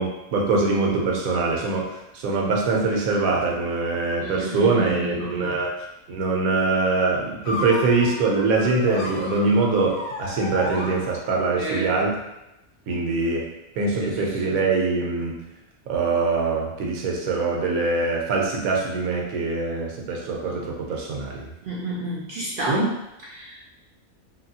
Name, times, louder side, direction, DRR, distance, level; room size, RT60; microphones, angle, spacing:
voice 1, 0.0-5.7 6.1-12.1 12.9-13.5 13.8-15.4 15.9-21.5 22.7-22.9, right 3 dB, 80° right, -1 dB, 1.1 m, -23 dB
voice 2, 4.2-5.6 11.6-11.9 14.0-14.2 14.4-14.6 21.7-22.8 23.3-23.6, right 2 dB, 65° right, -6 dB, 0.5 m, -30 dB
sound 1, 7.4-11.6, left 2 dB, 60° left, 0.7 m, -34 dB
2.9 x 2.7 x 2.7 m, 0.92 s
omnidirectional pair, 1.5 m